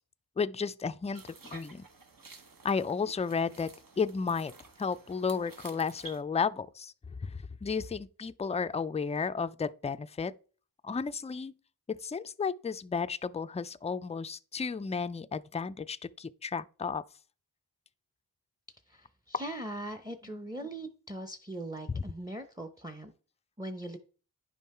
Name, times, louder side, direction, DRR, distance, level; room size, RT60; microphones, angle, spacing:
voice 1, 0.4-1.8 2.6-4.5 4.8-6.9 7.2-10.3 10.8-11.5 11.9-17.0 21.9-22.0, left 5 dB, 20° left, 0.3 m, -33 dB
sound 1, 1.1-6.2, right 3 dB, 65° right, 1.2 m, -52 dB
voice 2, 18.9-23.1 23.6-24.0, right 1 dB, 10° right, 0.7 m, -40 dB
9.9 x 5.5 x 4.3 m
wide cardioid pair, 70°, 36 cm